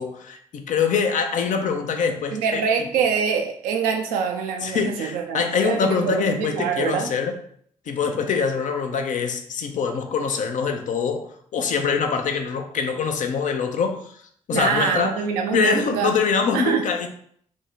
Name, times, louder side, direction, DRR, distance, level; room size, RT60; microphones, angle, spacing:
voice 1, 0.0-2.6 4.6-7.3 7.9-14.1 14.5-15.2 15.5-17.1, left 6 dB, 60° left, 6 dB, 0.5 m, -24 dB
voice 2, 2.3-7.1 14.5-16.1 16.5-16.8, right 6 dB, 80° right, 4 dB, 0.4 m, -24 dB
2.6 x 2.1 x 3.9 m, 0.63 s
hypercardioid pair, 45°, 15 cm